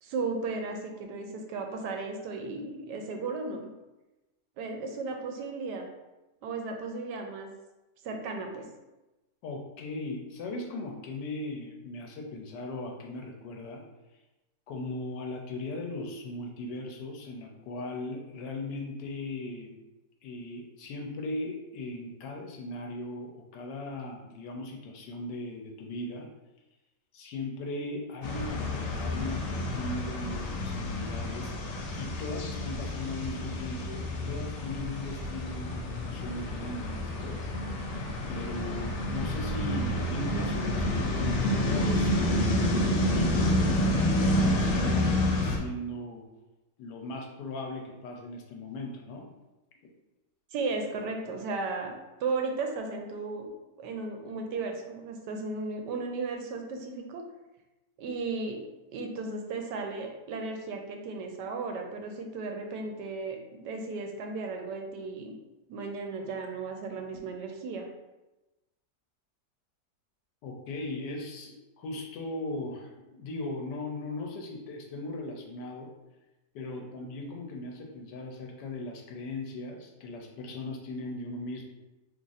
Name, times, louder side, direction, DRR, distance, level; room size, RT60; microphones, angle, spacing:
voice 1, 0.0-3.7 4.6-5.9 6.4-7.5 8.0-8.7 38.6-38.9 50.5-51.9 52.2-53.5 53.8-57.3 58.0-58.6 58.9-65.3 65.7-67.8, right 3 dB, 85° right, 3 dB, 1.2 m, -35 dB
voice 2, 9.4-13.8 14.7-19.8 20.2-26.3 27.1-31.5 31.9-37.8 38.3-42.4 42.7-46.2 46.8-49.3 49.8-49.9 70.4-75.9 76.5-81.6, left 2 dB, 90° left, 1 dB, 1.3 m, -38 dB
sound 1, 28.2-45.6, left 1 dB, 75° left, 0.6 m, -29 dB
3.1 x 2.4 x 4.0 m, 1.0 s
omnidirectional pair, 1.8 m